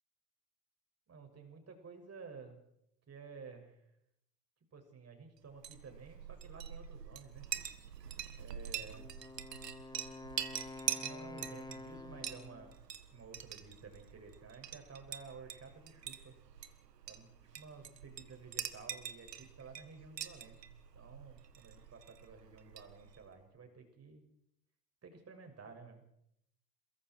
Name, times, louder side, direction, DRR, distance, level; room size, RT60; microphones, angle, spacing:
voice 1, 1.1-2.6 3.1-3.8 4.7-7.4 8.4-9.1 10.8-12.7 13.1-16.3 17.1-17.3 17.5-20.6 20.9-24.2 25.0-26.0, right 5 dB, 30° right, 5 dB, 6.6 m, -53 dB
Chink clink, 5.5-23.3, right 9 dB, 90° right, 1.7 m, -45 dB
Wind instrument woodwind instrument, 8.9-12.8, left 3 dB, 10° left, 1.4 m, -49 dB
28.0 x 22.0 x 4.7 m, 0.77 s
hypercardioid pair, 75°, 47 cm